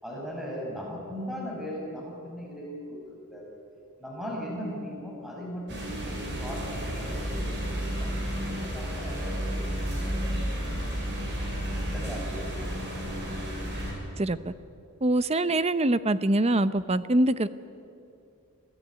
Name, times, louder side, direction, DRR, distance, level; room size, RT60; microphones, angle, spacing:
voice 1, 0.0-3.5 4.0-9.6 10.0-10.6 11.6-12.7, equal, ahead, -3 dB, 5.7 m, -39 dB
sound 1, 5.7-13.9, equal, 50° right, 6.8 m, -32 dB
voice 2, 14.2-14.5 15.0-17.5, right 1 dB, 30° right, 14 dB, 0.7 m, -24 dB
26.5 x 16.0 x 9.7 m, 2.6 s
head